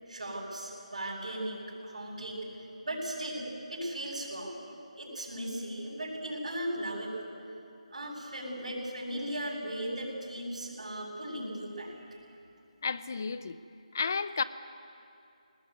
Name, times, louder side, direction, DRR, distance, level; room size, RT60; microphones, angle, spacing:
voice 1, 0.1-4.6 5.0-7.3 7.9-12.4, right 1 dB, 65° right, 0 dB, 7.7 m, -37 dB
voice 2, 12.8-13.6 13.9-14.4, left 5 dB, 25° left, 15 dB, 0.6 m, -32 dB
21.0 x 19.5 x 9.6 m, 2.6 s
figure-of-eight pair, 180°, 4 cm